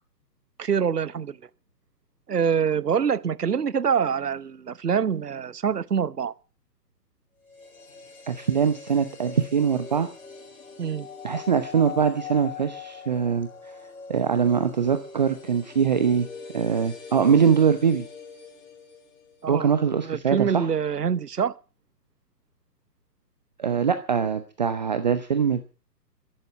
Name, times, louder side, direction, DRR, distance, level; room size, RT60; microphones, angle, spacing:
voice 1, 0.6-1.4 2.3-6.3 10.8-11.1 19.4-19.7 20.0-21.5, right 7 dB, 70° right, 0.9 m, -25 dB
sound 1, 7.4-19.5 19.8-19.9, left 6 dB, 50° left, 5.1 m, -42 dB
voice 2, 8.3-10.1 11.2-13.5 14.1-16.3 16.5-18.0 19.5-20.7 23.6-25.7, right 7 dB, 25° right, 0.8 m, -22 dB
13.5 x 10.5 x 8.6 m
figure-of-eight pair, 135°, 50 cm